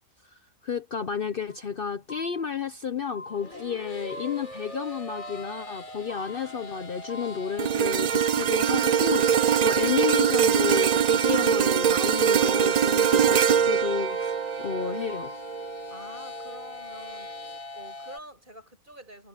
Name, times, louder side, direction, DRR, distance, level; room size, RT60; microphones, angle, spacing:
voice 1, 0.2-15.4, left 7 dB, 50° left, 0.9 m, -32 dB
sound 1, 1.5-1.7 2.1-2.7 3.1-3.7 4.1-4.7 5.1-5.7 6.1-6.7 7.1-7.7 8.1-8.7 9.1-9.7 10.1-10.7 11.1-11.7 12.1-12.7 13.1-13.7 14.1-14.7 15.1-15.4, left 2 dB, 10° left, 3.0 m, -44 dB
sound 2, 3.2-18.2, left 2 dB, 80° left, 4.1 m, -42 dB
voice 2, 6.3-6.9 15.9-17.3 17.7-19.3, right 1 dB, 40° right, 6.5 m, -47 dB
sound 3, 7.6-15.9 16.4-16.6, right 8 dB, 75° right, 0.3 m, -23 dB
omnidirectional pair, 1.4 m